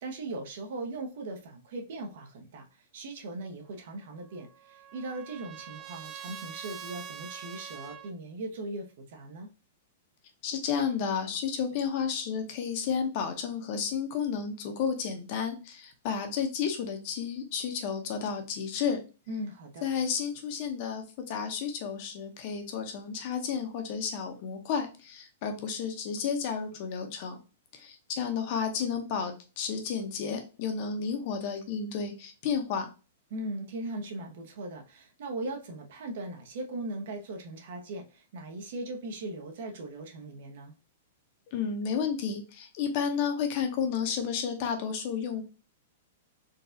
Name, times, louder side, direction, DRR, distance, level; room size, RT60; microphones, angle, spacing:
voice 1, 0.0-2.7 2.9-9.5 19.3-19.9 33.3-40.7, right 2 dB, 60° right, 3 dB, 1.0 m, -39 dB
Trumpet, 4.2-8.1, right 8 dB, 25° right, 0.3 m, -44 dB
voice 2, 10.4-19.0 19.8-27.4 27.7-32.9 41.5-45.4, left 6 dB, 40° left, 5 dB, 0.7 m, -32 dB
3.9 x 2.3 x 2.7 m, 0.32 s
hypercardioid pair, 160°, 0 cm